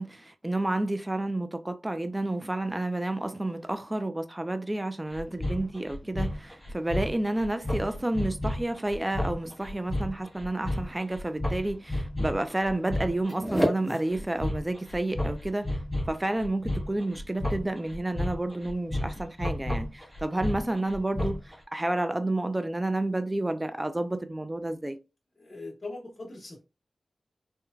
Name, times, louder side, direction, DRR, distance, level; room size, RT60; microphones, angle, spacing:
voice 1, 0.0-15.8 16.0-25.0, right 1 dB, 20° right, 0.4 m, -30 dB
sound 1, 5.1-21.5, left 1 dB, ahead, 1.0 m, -32 dB
voice 2, 25.4-26.6, left 2 dB, 35° left, 1.0 m, -40 dB
3.0 x 2.1 x 2.3 m
wide cardioid pair, 65°, 0 cm